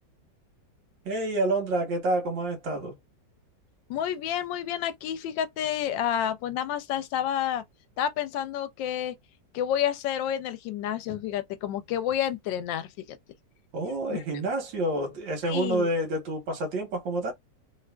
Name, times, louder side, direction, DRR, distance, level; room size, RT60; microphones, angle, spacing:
voice 1, 1.1-3.0 13.7-17.3, right 1 dB, 80° right, 1.9 m, -28 dB
voice 2, 3.9-7.6 8.0-9.1 9.5-13.2 14.3-14.4 15.5-15.9, left 10 dB, 85° left, 1.3 m, -29 dB
3.7 x 2.4 x 2.2 m
omnidirectional pair, 2.0 m